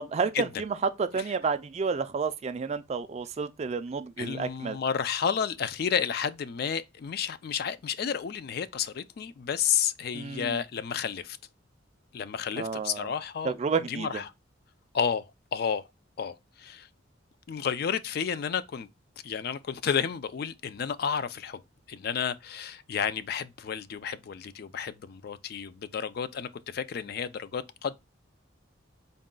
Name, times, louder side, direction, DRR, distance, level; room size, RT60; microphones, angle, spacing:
voice 1, 0.0-4.8 10.1-10.6 12.6-13.1 13.4-14.2, right 5 dB, 35° right, 0.3 m, -30 dB
voice 2, 4.2-11.4 12.1-13.5 13.9-14.3 14.9-15.2 15.5-15.9 16.2-16.9 17.5-18.9 19.2-21.6 21.9-28.0, left 7 dB, 50° left, 0.3 m, -31 dB
4.0 x 2.2 x 3.6 m
head